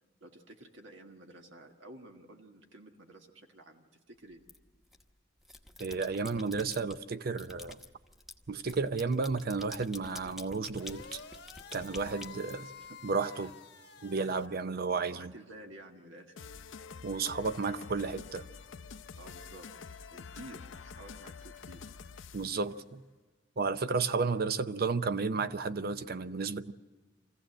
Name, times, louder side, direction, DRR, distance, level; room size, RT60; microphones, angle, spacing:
voice 1, 0.2-4.4 12.0-13.5 14.4-14.6 15.1-16.5 19.1-21.8, right 1 dB, 75° right, 1.6 m, -52 dB
sound 1, 4.5-5.0 5.4-7.0 7.4-13.1, left 1 dB, ahead, 1.0 m, -49 dB
voice 2, 5.8-7.8 8.5-11.2 11.7-12.6 13.0-13.5 14.0-15.3 17.0-18.5 22.3-23.0 23.6-26.7, right 4 dB, 50° right, 0.6 m, -32 dB
sound 2, 10.7-14.5, left 6 dB, 65° left, 1.1 m, -50 dB
sound 3, 16.4-22.6, left 5 dB, 80° left, 0.6 m, -47 dB
24.5 x 15.5 x 7.8 m
head